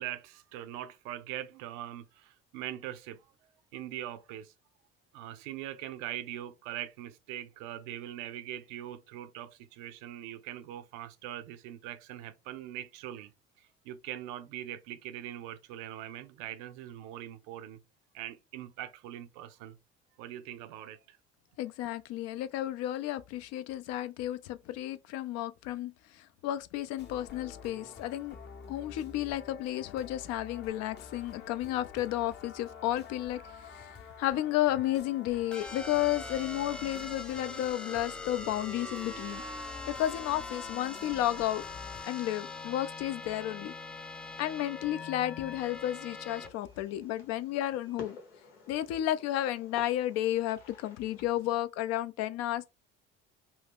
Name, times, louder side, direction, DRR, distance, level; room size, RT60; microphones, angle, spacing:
voice 1, 0.0-3.3 3.7-4.5 5.1-13.3 13.6-17.8 18.1-19.8 20.2-21.2, right 12 dB, 70° right, 0.5 m, -42 dB
voice 2, 21.6-28.4 28.7-33.9 34.2-39.4 39.9-41.6 42.0-43.7 44.4-48.2 48.7-52.7, left 13 dB, 60° left, 0.5 m, -32 dB
sound 1, 27.0-42.0, left 6 dB, 40° left, 0.8 m, -49 dB
sound 2, 35.5-46.5, left 3 dB, 5° left, 0.5 m, -42 dB
Fireworks, 46.3-51.6, left 4 dB, 90° left, 0.9 m, -52 dB
2.6 x 2.3 x 3.4 m
hypercardioid pair, 65°, 29 cm